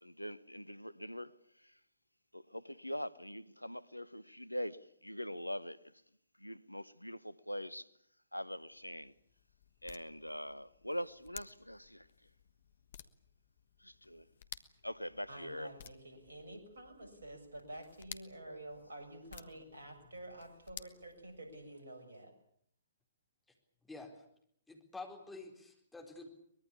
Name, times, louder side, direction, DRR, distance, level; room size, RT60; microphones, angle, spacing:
voice 1, 0.0-1.3 1.6-1.7 2.3-5.8 6.4-7.9 8.3-9.1 9.8-12.1 13.8-14.3 14.8-15.7 18.4-18.6, equal, 90° left, 1.0 m, -43 dB
sound 1, 8.6-21.8, left 9 dB, 50° left, 1.4 m, -56 dB
voice 2, 15.3-22.3, right 1 dB, 70° right, 6.8 m, -50 dB
voice 3, 23.9-24.2 24.7-26.3, left 3 dB, 5° left, 4.2 m, -48 dB
23.5 x 21.0 x 8.6 m
figure-of-eight pair, 120°, 0 cm